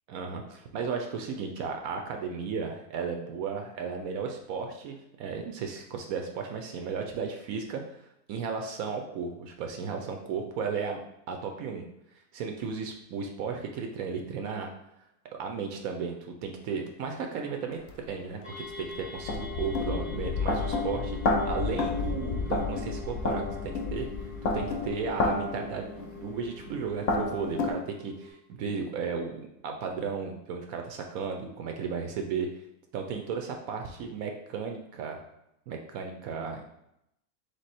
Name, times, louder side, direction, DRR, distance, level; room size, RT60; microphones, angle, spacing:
voice 1, 0.1-7.8 8.3-11.0 11.3-11.8 12.3-14.7 15.4-17.8 18.1-21.2 21.4-24.1 24.4-32.5 32.9-35.2 35.7-36.6, right 5 dB, 70° right, 3 dB, 0.9 m, -34 dB
sound 1, 17.9-18.0 18.7-27.7, left 3 dB, 65° left, 0.9 m, -31 dB
sound 2, 18.4-28.3, left 3 dB, 45° left, 0.4 m, -46 dB
3.5 x 3.3 x 4.1 m, 0.82 s
omnidirectional pair, 1.6 m